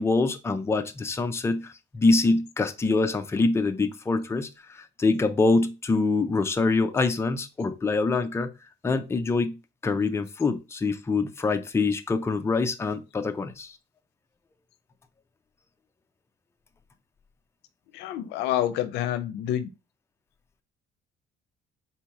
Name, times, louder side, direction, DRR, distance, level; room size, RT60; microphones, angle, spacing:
voice 1, 0.0-8.5 8.8-9.6 9.8-13.8, left 3 dB, 15° left, 0.5 m, -25 dB
voice 2, 17.9-19.7, left 12 dB, 85° left, 0.5 m, -28 dB
3.7 x 2.8 x 4.7 m
cardioid pair, 110°, 17 cm